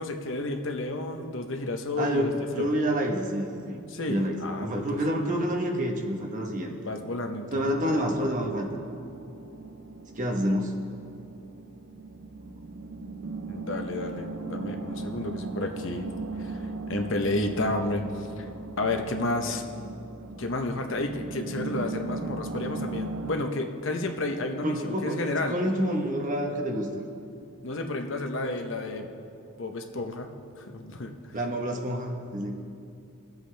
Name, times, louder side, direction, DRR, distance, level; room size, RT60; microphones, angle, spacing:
voice 1, 0.0-2.7 3.9-5.0 6.8-7.7 13.5-16.1 16.4-16.6 16.9-18.5 18.8-19.6 20.4-25.6 27.6-29.1 29.6-31.1, left 2 dB, 60° left, 4 dB, 0.8 m, -31 dB
voice 2, 2.0-6.7 7.5-8.7 10.2-10.8 24.6-26.9 31.3-32.5, equal, 35° right, 1 dB, 1.1 m, -28 dB
sound 1, 7.5-23.3, right 3 dB, 80° right, 0.7 m, -38 dB
20.0 x 8.0 x 3.4 m, 2.6 s
head